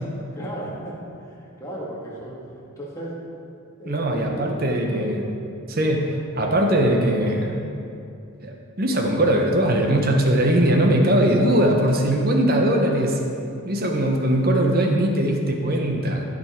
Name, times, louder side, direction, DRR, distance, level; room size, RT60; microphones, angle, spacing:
voice 1, 0.3-1.0 1.2-2.4 2.8-3.1 3.8-5.1, right 1 dB, 15° left, -7 dB, 1.9 m, -34 dB
voice 2, 3.9-5.2 5.7-7.6 8.4-13.2 13.6-16.2, right 1 dB, 40° right, 2 dB, 0.9 m, -20 dB
14.5 x 5.2 x 4.4 m, 2.6 s
head